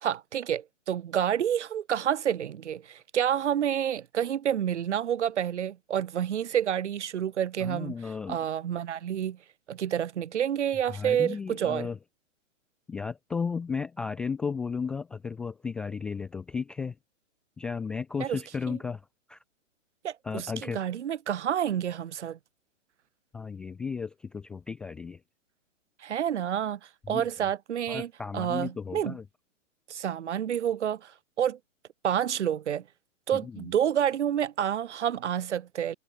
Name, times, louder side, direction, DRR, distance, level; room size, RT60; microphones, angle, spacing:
voice 1, 0.0-7.9 8.3-9.4 9.7-11.9 18.2-18.4 18.7-18.8 20.0-22.4 26.0-26.8 27.1-29.2 29.9-31.1 31.4-31.6 32.0-32.8 33.3-35.9, right 9 dB, 60° right, 3.2 m, -29 dB
voice 2, 7.6-8.4 10.9-12.0 12.9-16.9 17.6-19.0 19.3-19.4 20.2-20.8 23.3-25.2 27.1-27.2 27.9-29.2 33.3-33.7, left 5 dB, ahead, 0.4 m, -34 dB
hypercardioid pair, 145°, 40 cm